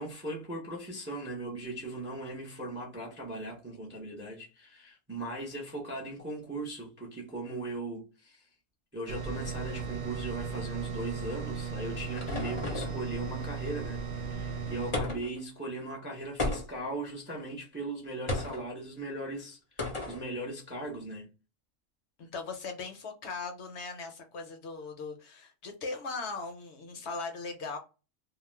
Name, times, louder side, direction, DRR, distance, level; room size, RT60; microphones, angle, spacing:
voice 1, 0.0-8.5 8.9-21.3, right 2 dB, 15° right, 0.4 m, -39 dB
sound 1, 9.1-14.9, right 5 dB, 65° right, 0.8 m, -36 dB
sound 2, 11.5-13.0 14.9-15.4 16.4-16.9 18.3-18.7 19.8-20.2, left 2 dB, 35° left, 0.5 m, -34 dB
voice 2, 22.2-27.8, left 4 dB, 65° left, 0.8 m, -39 dB
2.3 x 2.1 x 3.1 m
omnidirectional pair, 1.4 m